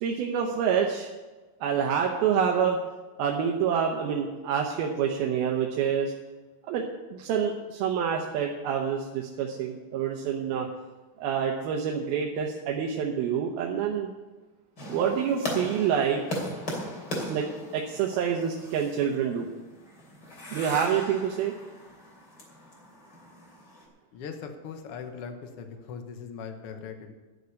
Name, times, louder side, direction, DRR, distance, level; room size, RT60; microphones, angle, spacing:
voice 1, 0.0-1.1 1.6-2.8 3.2-6.1 6.7-10.7 11.2-14.1 14.9-16.2 17.3-17.5 17.7-19.5 20.5-21.5, right 7 dB, 85° right, 0 dB, 2.9 m, -27 dB
sound 1, 14.8-23.9, left 1 dB, 30° left, 3.1 m, -38 dB
voice 2, 24.1-27.1, left 6 dB, 90° left, 5 dB, 1.2 m, -40 dB
12.0 x 6.5 x 9.4 m, 1.2 s
omnidirectional pair, 4.2 m